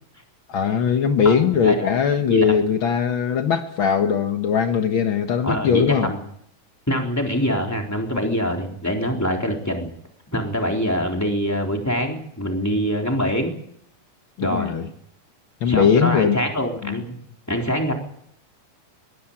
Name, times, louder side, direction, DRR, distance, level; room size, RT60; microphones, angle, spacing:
voice 1, 0.5-6.1 9.2-9.4 14.4-14.9 15.6-16.4 16.8-17.0, left 7 dB, 85° left, 1.1 m, -20 dB
voice 2, 1.2-1.9 2.3-2.6 5.4-6.2 6.9-9.9 10.3-13.5 14.4-14.8 15.6-17.0 17.5-17.9, equal, 5° left, 3.4 m, -24 dB
21.5 x 16.0 x 8.9 m
omnidirectional pair, 4.2 m